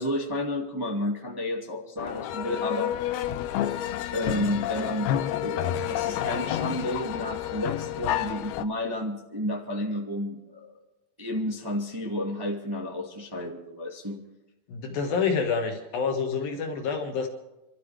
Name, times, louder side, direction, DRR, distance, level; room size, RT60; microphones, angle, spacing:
voice 1, 0.0-2.9 3.7-3.8 4.1-5.1 5.4-10.8 11.2-14.2, left 1 dB, 15° right, 0 dB, 0.8 m, -31 dB
sound 1, 2.0-8.7, left 11 dB, 90° left, 2.8 m, -29 dB
voice 2, 14.7-17.3, left 5 dB, 70° left, 3 dB, 3.2 m, -27 dB
28.0 x 13.5 x 3.4 m, 1.0 s
omnidirectional pair, 4.4 m